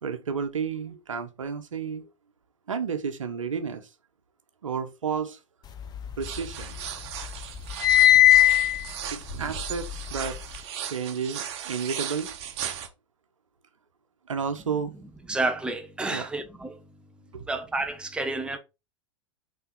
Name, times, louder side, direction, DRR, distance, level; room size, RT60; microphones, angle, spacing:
voice 1, 0.0-2.1 2.7-3.9 4.6-5.4 6.2-6.8 9.1-10.4 10.8-12.3 14.3-14.9 16.1-16.3 17.3-17.4, right 6 dB, 80° right, 1.1 m, -31 dB
sound 1, 5.8-6.9 7.2-10.6, left 13 dB, 25° left, 1.0 m, -21 dB
sound 2, 6.2-12.9, right 9 dB, 55° right, 1.3 m, -37 dB
voice 2, 15.3-16.8 17.5-18.6, right 2 dB, 5° right, 0.9 m, -30 dB
5.6 x 4.3 x 4.1 m
figure-of-eight pair, 100°, 16 cm